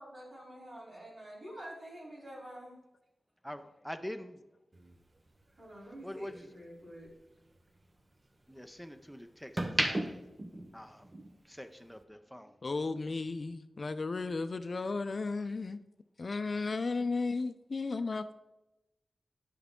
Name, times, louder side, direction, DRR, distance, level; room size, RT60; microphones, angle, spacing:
voice 1, 0.0-2.7 5.5-7.1, right 1 dB, 55° right, 3.3 m, -48 dB
voice 2, 3.4-4.4 6.0-6.3 8.5-9.5 9.8-10.2 10.7-11.1 11.5-12.5, equal, ahead, 0.5 m, -44 dB
sound 1, 4.7-7.1 7.5-8.9 9.3-11.5 11.8-12.0, right 1 dB, 35° right, 0.8 m, -36 dB
voice 3, 12.6-15.8 16.2-18.4, left 3 dB, 50° left, 0.5 m, -34 dB
9.9 x 5.9 x 3.7 m
wide cardioid pair, 90°, 0 cm